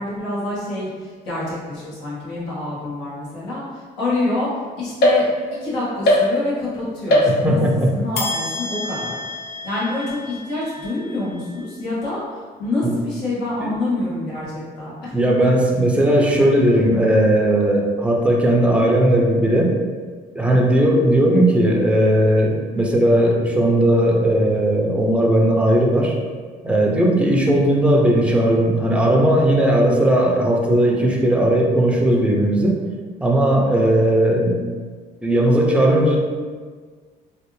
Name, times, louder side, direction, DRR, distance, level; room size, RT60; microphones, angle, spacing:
voice 1, 0.0-4.5 4.7-5.3 5.6-7.6 7.9-9.2 9.6-15.1, left 2 dB, 85° left, -8 dB, 1.5 m, -27 dB
sound 1, 5.0-5.7 6.0-6.7 7.1-7.8 8.1-11.6, left 1 dB, 70° left, 0.7 m, -22 dB
voice 2, 7.2-7.9 12.8-12.9 13.6-13.7 15.1-19.8 20.3-26.1 26.6-32.8 33.2-34.6 35.2-36.2, right 1 dB, 5° right, -1 dB, 0.5 m, -17 dB
3.2 x 2.5 x 3.1 m, 1.5 s
cardioid pair, 110°, 17 cm